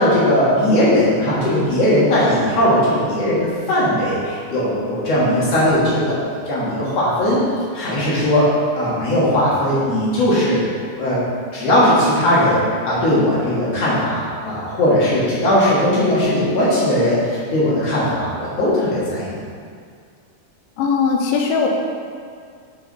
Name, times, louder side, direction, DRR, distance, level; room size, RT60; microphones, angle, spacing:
voice 1, 0.0-7.4 7.7-8.5 8.7-10.6 11.0-11.2 11.5-12.6 12.8-19.4, left 1 dB, 55° left, -8 dB, 2.3 m, -18 dB
voice 2, 20.8-21.7, left 5 dB, 80° left, 1 dB, 2.4 m, -19 dB
7.0 x 5.8 x 4.0 m, 2.1 s
omnidirectional pair, 4.0 m